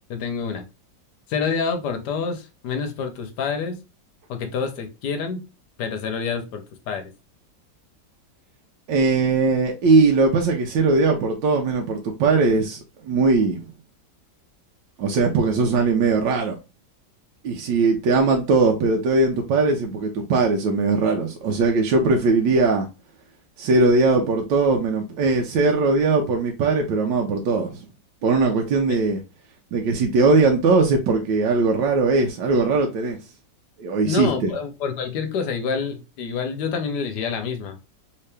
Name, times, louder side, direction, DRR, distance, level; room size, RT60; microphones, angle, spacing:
voice 1, 0.1-0.7 1.3-3.8 4.3-5.4 5.8-7.1 34.0-37.8, left 5 dB, 70° left, 1.1 m, -27 dB
voice 2, 8.9-12.8 13.0-13.6 15.0-16.6 17.4-22.9 23.6-27.8 28.2-29.2 29.7-33.2 33.8-34.5, right 3 dB, 85° right, 1.3 m, -20 dB
3.2 x 2.8 x 3.3 m
omnidirectional pair, 2.0 m